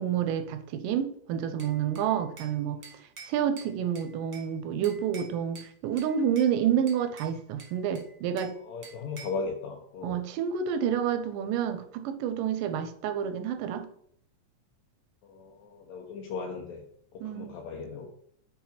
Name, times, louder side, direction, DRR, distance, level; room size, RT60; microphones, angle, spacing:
voice 1, 0.0-2.8 3.3-8.5 10.0-13.9 17.2-17.5, right 9 dB, 90° right, 10 dB, 2.2 m, -29 dB
Bell / Glass, 1.6-2.6 2.8-4.5 4.8-5.7 6.0-6.5 6.9-8.6 8.8-9.4, right 5 dB, 45° right, 1.4 m, -48 dB
voice 2, 8.6-10.2 15.2-16.8 17.1-18.1, left 4 dB, 75° left, 0 dB, 1.8 m, -37 dB
5.8 x 4.5 x 4.2 m, 0.64 s
omnidirectional pair, 3.7 m